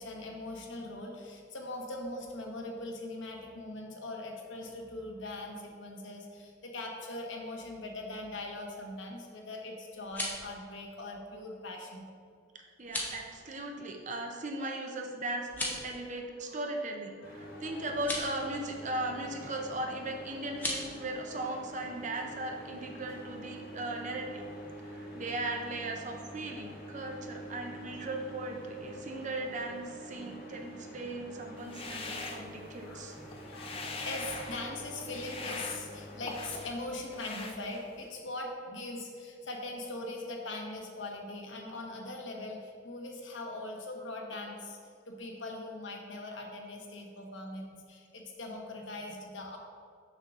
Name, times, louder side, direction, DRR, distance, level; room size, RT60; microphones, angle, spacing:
voice 1, 0.0-12.1 17.2-17.9 32.8-44.8 45.1-49.6, left 2 dB, 70° left, 1 dB, 1.0 m, -41 dB
sound 1, 9.9-10.5 12.8-13.2 15.4-15.9 17.9-18.3 20.5-20.8, left 1 dB, 10° left, 0.9 m, -36 dB
voice 2, 12.5-24.4 24.8-33.2, right 2 dB, 40° right, 2 dB, 0.6 m, -38 dB
sound 2, 17.2-36.6, equal, 50° left, 1.2 m, -47 dB
sound 3, 31.6-33.0 33.3-34.7 35.1-36.8 37.1-38.1, left 3 dB, 30° left, 0.5 m, -42 dB
6.5 x 6.2 x 3.6 m, 2.3 s
head